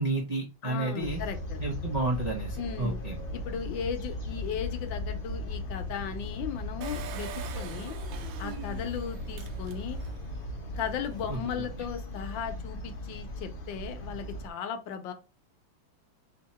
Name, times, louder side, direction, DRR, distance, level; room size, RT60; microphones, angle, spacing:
voice 1, 0.0-1.2 1.6-3.2 11.3-11.7, right 2 dB, 70° right, 0.3 m, -31 dB
voice 2, 0.6-1.6 2.6-3.0 3.3-7.3 7.5-8.0 8.4-10.0 10.8-15.1, left 7 dB, 75° left, 1.3 m, -36 dB
sound 1, 1.0-14.5, left 2 dB, 55° left, 0.6 m, -37 dB
Engine, 6.8-10.3 10.7-10.8 11.0-11.1, right 8 dB, 85° right, 1.4 m, -43 dB
3.6 x 2.8 x 4.1 m
omnidirectional pair, 2.2 m